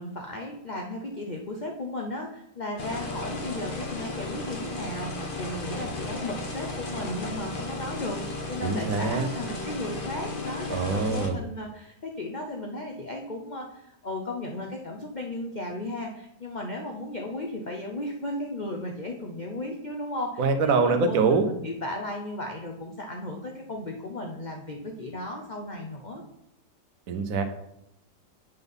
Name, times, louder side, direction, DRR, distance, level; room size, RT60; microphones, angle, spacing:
voice 1, 0.0-8.2 8.5-26.2, left 1 dB, 65° left, 1 dB, 0.4 m, -35 dB
sound 1, 2.8-11.3, left 2 dB, 40° left, 0.9 m, -35 dB
voice 2, 8.6-9.3 10.7-11.4 20.4-21.5 27.1-27.4, right 4 dB, 60° right, 8 dB, 1.0 m, -24 dB
8.0 x 4.0 x 5.3 m, 0.79 s
omnidirectional pair, 1.9 m